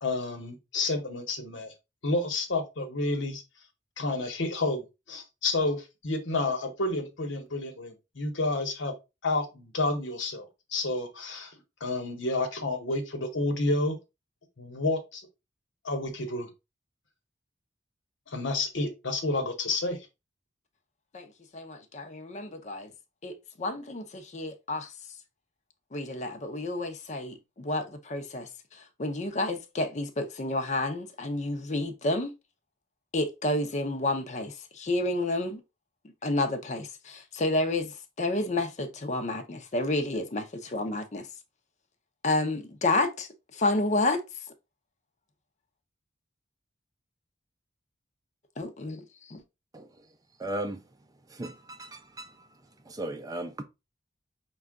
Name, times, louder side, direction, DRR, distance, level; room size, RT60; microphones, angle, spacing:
voice 1, 0.0-1.7 2.0-3.4 4.0-8.9 9.2-11.5 11.8-14.0 14.6-15.2 15.8-16.5 18.3-20.0, left 2 dB, 70° left, 1.1 m, -30 dB
voice 2, 21.5-22.9 23.2-24.9 25.9-28.5 29.0-32.3 33.1-35.6 36.2-41.2 42.2-44.2 48.6-49.4, left 2 dB, 40° left, 0.7 m, -30 dB
voice 3, 49.7-50.1 50.4-50.8 51.3-52.5 52.8-53.6, right 1 dB, 20° right, 0.4 m, -37 dB
5.5 x 2.3 x 3.6 m
head